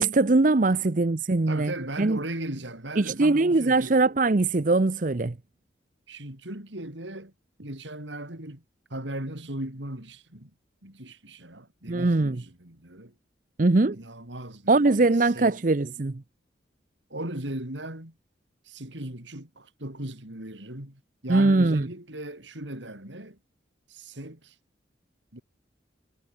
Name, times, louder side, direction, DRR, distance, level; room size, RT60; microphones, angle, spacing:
voice 1, 0.0-1.7 2.0-2.2 3.0-5.4 11.9-12.4 13.6-14.0 14.7-16.2 21.3-21.9, right 3 dB, 45° right, 0.7 m, -21 dB
voice 2, 1.5-4.0 6.1-7.3 7.6-8.6 8.9-10.5 10.8-13.2 13.9-15.6 17.1-18.2 18.6-23.4 23.9-24.6 25.3-25.4, right 1 dB, 80° right, 5.3 m, -38 dB
head